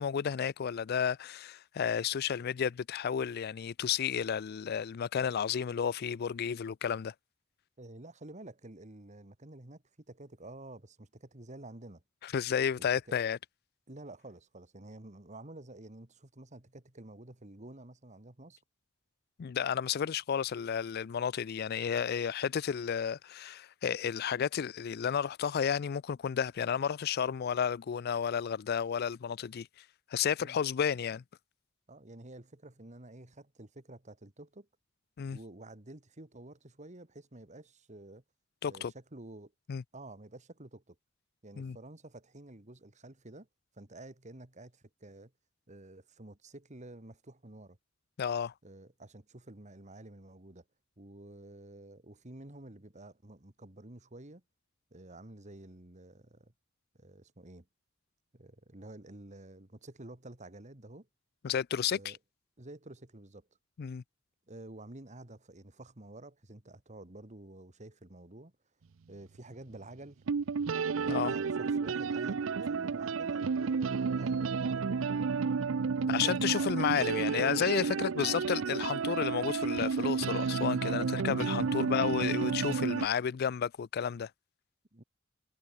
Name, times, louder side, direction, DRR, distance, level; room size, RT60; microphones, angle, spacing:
voice 1, 0.0-7.1 12.2-13.4 19.4-29.7 30.1-31.2 35.2-35.4 38.6-38.9 39.7-39.8 41.6-41.8 48.2-48.5 61.4-62.1 63.8-64.0 71.1-71.3 76.1-84.3, left 7 dB, 50° left, 0.4 m, -32 dB
voice 2, 7.8-12.0 12.8-12.9 13.9-18.6 30.4-30.6 31.9-34.7 35.3-38.2 38.6-39.5 39.9-41.0 41.4-43.5 43.7-45.3 45.7-47.8 48.6-50.6 51.0-54.4 54.9-56.5 57.0-57.7 58.3-61.1 61.9-62.2 62.6-63.5 64.5-68.5 69.1-70.2 71.0-75.1 76.0-76.9 77.9-78.5 81.0-81.3 81.6-82.2 84.9-85.0, right 2 dB, 35° right, 2.1 m, -50 dB
sound 1, 69.8-69.9 70.3-83.1, right 5 dB, 75° right, 0.5 m, -31 dB
head